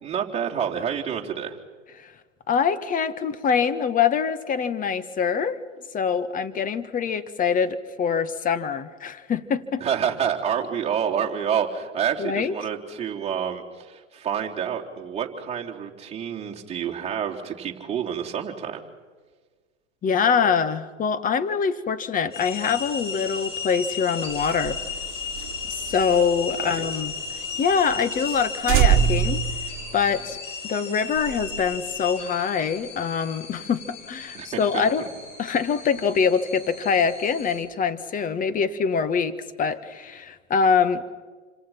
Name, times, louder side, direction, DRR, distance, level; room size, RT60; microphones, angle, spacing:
voice 1, 0.0-1.6 9.8-18.8 26.6-26.9 34.3-35.1, right 8 dB, 15° right, -2 dB, 3.6 m, -28 dB
voice 2, 2.5-5.6 5.9-9.8 12.2-12.5 20.0-24.8 25.8-27.1 27.6-29.4 29.9-30.4 30.6-35.0 35.4-41.1, left 6 dB, 20° left, 13 dB, 1.5 m, -24 dB
sound 1, 22.3-37.6, left 5 dB, 90° left, 7.2 m, -35 dB
sound 2, 24.3-27.2 27.5-27.6 27.9-28.0 28.3-28.4 28.7-30.4, right 10 dB, 35° right, 2.2 m, -24 dB
28.5 x 26.5 x 5.9 m, 1.4 s
hypercardioid pair, 110°, 37 cm